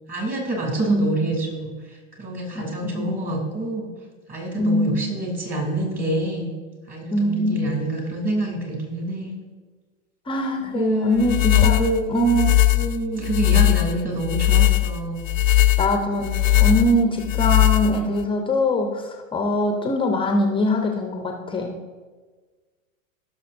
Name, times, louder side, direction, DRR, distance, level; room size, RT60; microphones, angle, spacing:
voice 1, 0.1-3.9 4.3-6.5 6.9-9.4 10.6-12.2 12.7-15.2, right 2 dB, 20° right, 0 dB, 2.9 m, -27 dB
voice 2, 0.8-1.3 2.8-3.2 4.6-5.1 7.1-7.8 10.3-12.5 15.8-21.8, left 1 dB, 10° left, 3 dB, 0.8 m, -23 dB
sound 1, 11.2-18.2, left 14 dB, 70° left, 0.5 m, -19 dB
17.0 x 6.4 x 2.6 m, 1.4 s
figure-of-eight pair, 100°, 41 cm